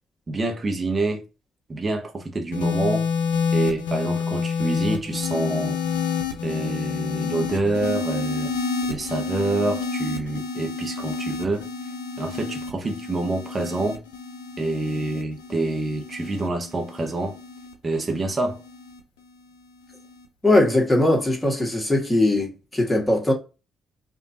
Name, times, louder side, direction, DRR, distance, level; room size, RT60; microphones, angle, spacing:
voice 1, 0.3-1.3 1.7-3.1 3.5-5.8 6.4-8.5 8.9-11.7 12.2-14.0 14.6-17.4 17.8-18.6, right 2 dB, 30° right, 1.0 m, -27 dB
sound 1, 2.5-19.0 19.9-20.3, left 5 dB, 80° left, 0.7 m, -29 dB
voice 2, 20.4-23.3, left 1 dB, 15° left, 1.9 m, -20 dB
5.0 x 2.7 x 2.8 m
figure-of-eight pair, 45°, 0 cm